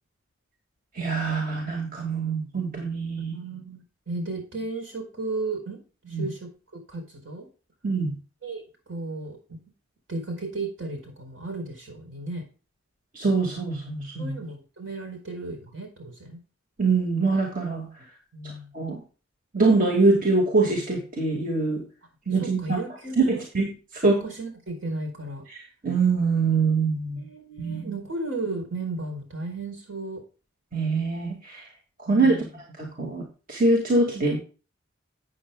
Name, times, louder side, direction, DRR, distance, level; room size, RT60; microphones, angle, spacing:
voice 1, 0.9-3.3 6.1-6.2 7.8-8.2 13.1-14.4 16.8-17.9 18.4-19.0 19.5-21.8 22.3-22.8 23.2-23.7 24.0-24.2 25.8-27.2 27.6-27.9 30.7-31.7 32.1-32.4 32.8-33.2 33.5-34.4, right 3 dB, 40° right, 0 dB, 2.1 m, -24 dB
voice 2, 3.2-5.8 6.1-6.5 6.9-7.5 8.4-9.6 10.1-12.4 14.2-16.4 18.3-18.7 22.4-23.4 24.0-25.4 27.2-30.2 32.1-32.5, right 2 dB, 70° right, 4 dB, 4.6 m, -34 dB
13.0 x 8.8 x 2.3 m, 0.35 s
head